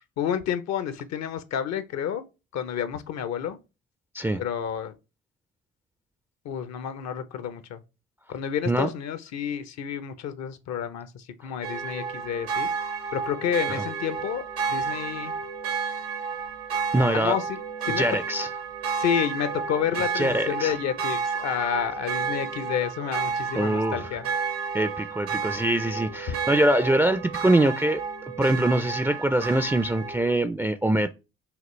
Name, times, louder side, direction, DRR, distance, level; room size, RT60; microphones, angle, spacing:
voice 1, 0.2-2.2 2.5-3.6 4.4-4.9 6.4-7.8 8.3-12.7 13.1-14.4 14.7-15.3 17.1-17.6 17.8-18.1 18.9-24.3 26.3-26.4, left 9 dB, 60° left, 0.7 m, -30 dB
sound 1, 11.6-30.4, right 5 dB, 85° right, 1.4 m, -31 dB
voice 2, 16.9-17.4 18.0-18.5 20.1-20.7 23.5-24.1 24.7-28.0 28.4-31.1, right 1 dB, 10° right, 0.4 m, -23 dB
5.0 x 3.0 x 3.0 m
hypercardioid pair, 50°, 31 cm